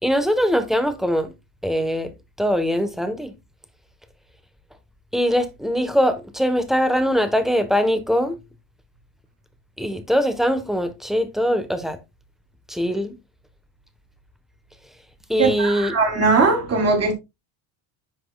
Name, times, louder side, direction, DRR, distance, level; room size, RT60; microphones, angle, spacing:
voice 1, 0.0-1.3 1.6-2.1 2.4-3.3 5.1-8.4 9.8-12.0 12.7-13.1 15.3-15.9, equal, ahead, 1.1 m, -22 dB
voice 2, 15.4-17.1, right 4 dB, 30° right, 3.5 m, -19 dB
10.0 x 6.0 x 2.3 m
cardioid pair, 115°, 50 cm